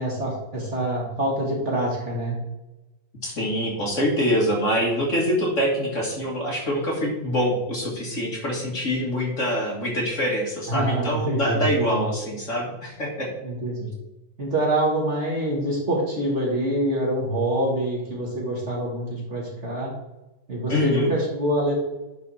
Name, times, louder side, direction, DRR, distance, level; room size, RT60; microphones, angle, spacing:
voice 1, 0.0-2.4 10.7-12.1 13.4-13.9 14.4-19.9 20.5-21.7, right 1 dB, 40° right, -3 dB, 2.0 m, -25 dB
voice 2, 3.2-13.3 20.7-21.1, equal, 40° left, -2 dB, 1.9 m, -25 dB
10.0 x 4.1 x 4.2 m, 1.0 s
omnidirectional pair, 2.1 m